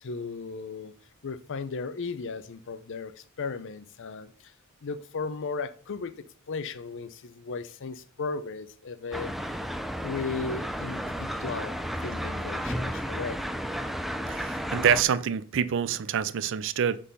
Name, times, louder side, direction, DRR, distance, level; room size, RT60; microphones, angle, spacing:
voice 1, 0.0-0.9 1.2-4.5 4.8-9.6 10.0-13.4, left 4 dB, 60° left, 0.6 m, -36 dB
sound 1, 9.1-15.0, equal, ahead, 0.4 m, -33 dB
voice 2, 14.3-17.0, right 8 dB, 60° right, 0.4 m, -26 dB
6.2 x 3.9 x 5.3 m
head